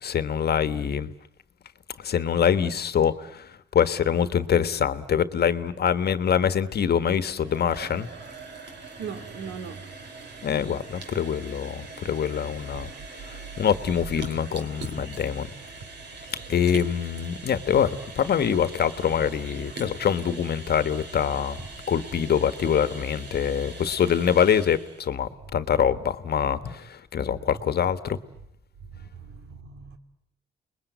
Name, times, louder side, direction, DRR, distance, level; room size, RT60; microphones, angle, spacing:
voice 1, 0.0-1.1 2.0-8.1 10.4-12.9 13.2-15.5 16.5-21.6 21.9-28.2, left 8 dB, 55° left, 1.4 m, -24 dB
sound 1, 6.8-25.1, right 3 dB, 60° right, 3.6 m, -42 dB
voice 2, 9.0-10.0 27.3-27.5 28.9-30.0, right 6 dB, 80° right, 2.8 m, -39 dB
29.0 x 21.0 x 9.3 m
cardioid pair, 90°, 20 cm